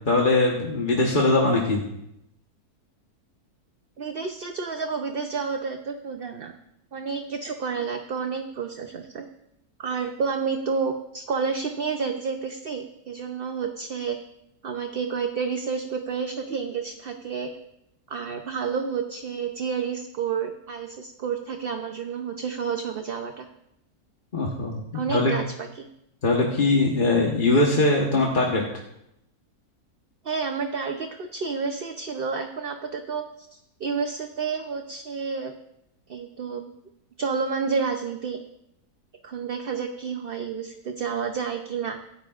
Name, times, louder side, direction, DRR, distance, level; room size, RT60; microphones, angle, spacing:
voice 1, 0.1-1.8 24.3-25.4 26.2-28.6, left 2 dB, 35° left, -2 dB, 1.4 m, -21 dB
voice 2, 4.0-6.5 6.9-9.2 9.8-14.2 14.6-17.5 18.1-23.5 24.9-25.9 30.2-35.5 36.1-36.7 37.2-38.4 39.2-42.0, right 5 dB, 50° right, 5 dB, 0.8 m, -30 dB
25.0 x 10.0 x 2.5 m, 0.82 s
omnidirectional pair, 1.6 m